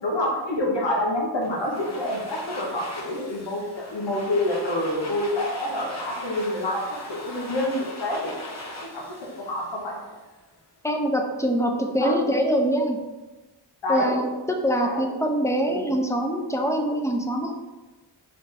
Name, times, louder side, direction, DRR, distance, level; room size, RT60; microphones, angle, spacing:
voice 1, 0.0-8.3 8.8-10.1 11.9-12.2 13.8-14.2 14.8-15.1 15.7-15.9, left 1 dB, 90° left, -2 dB, 1.0 m, -27 dB
Domestic sounds home sounds, 1.4-10.3, left 2 dB, 40° left, 1.0 m, -39 dB
voice 2, 10.8-13.0 13.9-14.2 14.5-17.5, equal, 5° left, 3 dB, 0.7 m, -24 dB
3.9 x 3.9 x 3.2 m, 1.1 s
cardioid pair, 40°, 43 cm